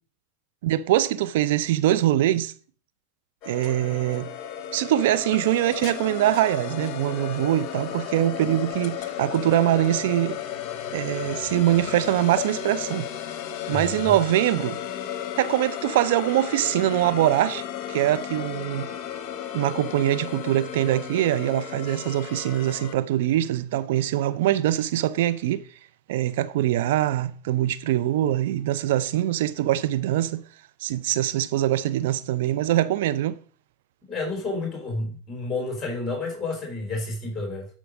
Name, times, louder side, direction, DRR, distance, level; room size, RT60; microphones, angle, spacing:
voice 1, 0.6-2.5 3.5-4.3 4.7-10.4 10.9-13.1 13.7-14.8 15.4-18.9 19.5-25.6 26.1-30.4 30.8-33.3, right 13 dB, 70° right, 0.5 m, -23 dB
sound 1, 3.4-23.0, left 10 dB, 50° left, 1.0 m, -34 dB
voice 2, 13.7-14.1 34.1-37.7, left 3 dB, 20° left, 3.7 m, -30 dB
11.0 x 4.7 x 5.2 m
hypercardioid pair, 95°, 0 cm